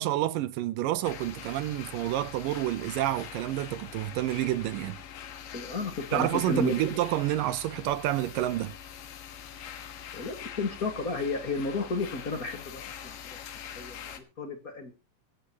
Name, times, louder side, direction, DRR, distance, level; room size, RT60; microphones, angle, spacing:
voice 1, 0.0-5.0 6.1-8.8, right 14 dB, 80° right, 2.4 m, -29 dB
sound 1, 1.0-14.2, left 9 dB, 80° left, 3.0 m, -44 dB
voice 2, 5.5-6.8 10.1-13.2 13.6-14.1 14.4-14.9, left 3 dB, 40° left, 1.4 m, -32 dB
23.5 x 9.0 x 2.9 m
omnidirectional pair, 3.9 m